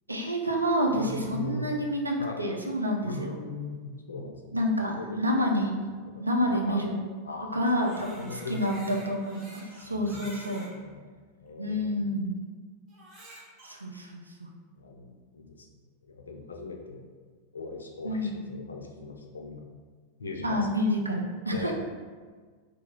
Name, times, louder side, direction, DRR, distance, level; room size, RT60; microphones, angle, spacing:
voice 1, 0.1-3.4 4.5-5.8 6.2-7.0 7.5-10.6 11.6-12.4 13.6-14.5 18.0-18.4 20.4-21.7, equal, 80° right, 1 dB, 0.3 m, -28 dB
voice 2, 0.9-1.8 2.2-2.4 3.0-4.6 5.0-5.2 6.5-6.8 7.2-7.6 8.1-9.0 9.8-10.2 10.7-11.0 11.4-12.0 14.8-15.7 16.0-17.0 17.5-19.6 20.2-20.7 21.1-21.2 21.5-21.7, left 3 dB, 75° left, 1 dB, 0.3 m, -39 dB
Crying sobbing, 7.6-10.7 11.5-11.6 12.9-13.7, right 1 dB, 30° right, 0.7 m, -48 dB
2.3 x 2.2 x 3.0 m, 1.5 s
figure-of-eight pair, 90°, 0 cm